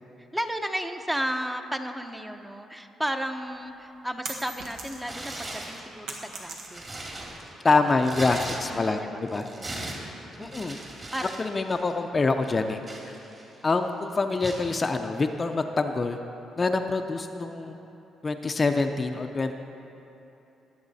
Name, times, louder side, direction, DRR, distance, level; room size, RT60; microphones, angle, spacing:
voice 1, 0.2-6.8 7.8-8.0 8.7-9.8 10.4-10.8 11.1-11.3, equal, 10° right, 6 dB, 0.8 m, -34 dB
sound 1, 3.4-5.3 5.6-7.1, right 3 dB, 85° right, 1.6 m, -39 dB
Tearing, 5.0-5.8 6.3-9.0 9.3-11.4 11.7-11.9 12.4-13.6 14.4-14.7, right 2 dB, 35° right, 2.4 m, -38 dB
voice 2, 7.6-9.5 10.4-10.8 11.4-12.8 13.0-13.1 13.6-16.2 16.6-17.8 18.2-19.6, left 3 dB, 30° left, 5 dB, 0.6 m, -25 dB
20.5 x 7.3 x 4.1 m, 3.0 s
cardioid pair, 90°, 0 cm